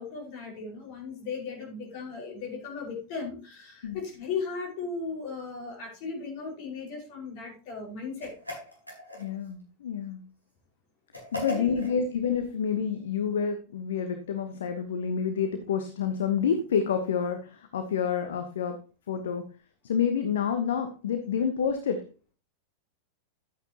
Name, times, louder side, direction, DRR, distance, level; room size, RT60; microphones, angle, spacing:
voice 1, 0.0-8.3 11.4-11.7, left 4 dB, 45° left, 0 dB, 5.2 m, -36 dB
sound 1, 8.2-9.5 11.1-12.0, left 1 dB, 85° left, 4.8 m, -38 dB
voice 2, 9.2-10.2 11.3-18.8 19.1-19.4 19.8-22.0, left 7 dB, 60° left, 7 dB, 1.1 m, -28 dB
12.5 x 9.1 x 3.0 m, 0.35 s
figure-of-eight pair, 90°, 0 cm